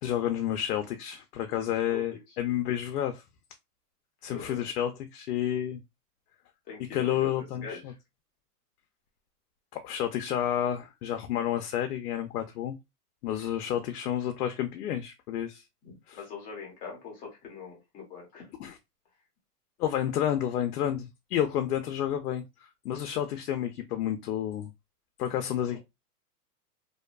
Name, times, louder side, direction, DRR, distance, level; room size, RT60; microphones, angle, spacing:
voice 1, 0.0-3.2 4.2-5.8 6.9-7.9 9.7-12.8 13.2-15.6 16.1-16.2 18.6-18.8 19.8-24.7 25.2-25.8, left 10 dB, 80° left, 0.5 m, -30 dB
voice 2, 4.2-4.7 6.7-8.0 15.8-18.5 25.7-25.8, left 6 dB, 20° left, 0.6 m, -43 dB
2.6 x 2.2 x 2.2 m
hypercardioid pair, 155°, 46 cm